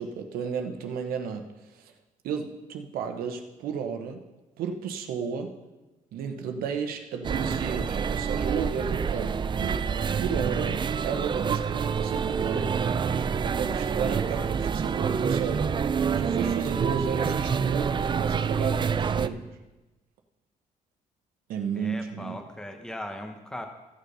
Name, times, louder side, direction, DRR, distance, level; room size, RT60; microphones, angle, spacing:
voice 1, 0.0-1.9 2.2-4.2 4.6-5.5 6.1-9.8 10.2-12.8 13.4-15.7 16.1-19.5 21.5-22.4, right 6 dB, 85° right, 5 dB, 1.0 m, -33 dB
sound 1, 7.2-19.3, right 6 dB, 30° right, 0.4 m, -27 dB
voice 2, 21.7-23.7, left 1 dB, 5° left, 4 dB, 1.2 m, -38 dB
14.0 x 6.5 x 5.4 m, 1.1 s
cardioid pair, 100°, 15 cm